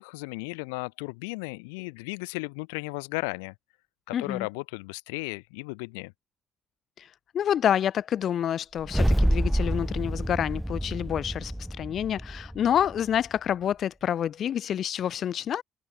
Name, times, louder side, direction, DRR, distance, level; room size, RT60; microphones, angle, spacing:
voice 1, 0.0-3.5 4.1-6.1, left 30 dB, 85° left, 4.8 m, -35 dB
voice 2, 4.1-4.5 7.0-7.1 7.3-11.5 11.8-15.6, left 9 dB, 60° left, 4.5 m, -28 dB
sound 1, 8.8-13.2, equal, 5° right, 5.8 m, -27 dB
hypercardioid pair, 55°, 0 cm